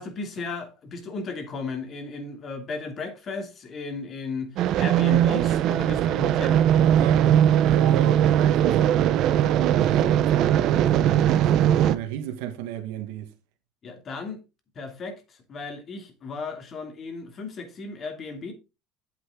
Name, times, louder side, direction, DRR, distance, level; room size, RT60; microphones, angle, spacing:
voice 1, 0.0-6.6 13.8-14.4 14.7-18.5, left 4 dB, 40° left, 2.7 m, -35 dB
sound 1, 4.6-11.9, right 11 dB, 60° right, 0.8 m, -20 dB
voice 2, 7.0-13.3, right 11 dB, 80° right, 1.5 m, -34 dB
8.3 x 8.1 x 3.7 m
supercardioid pair, 110°, 0 cm